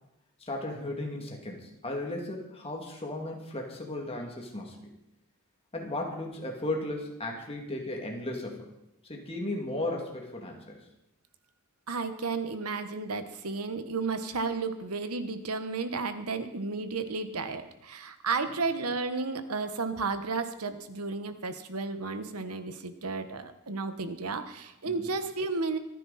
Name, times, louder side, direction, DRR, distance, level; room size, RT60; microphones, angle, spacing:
voice 1, 0.4-4.9 5.7-8.7 9.0-10.8 25.0-25.1, left 1 dB, 25° left, 0 dB, 2.6 m, -35 dB
voice 2, 11.9-25.8, right 4 dB, 90° right, 9 dB, 1.3 m, -33 dB
25.5 x 10.0 x 4.3 m, 0.90 s
head